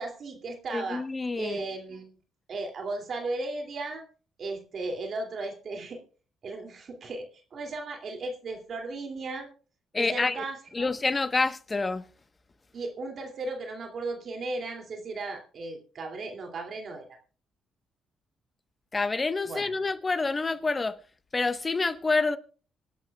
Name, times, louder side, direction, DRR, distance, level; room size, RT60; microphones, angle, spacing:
voice 1, 0.0-1.0 1.4-2.1 2.5-4.0 4.4-6.0 6.4-9.5 9.9-10.9 12.7-17.2 19.4-19.7, right 3 dB, 55° right, 2.5 m, -36 dB
voice 2, 0.7-1.6 9.9-10.4 10.7-12.1 18.9-21.0 21.3-22.4, left 3 dB, 25° left, 1.1 m, -27 dB
26.0 x 11.5 x 2.3 m
cardioid pair, 90°, 0 cm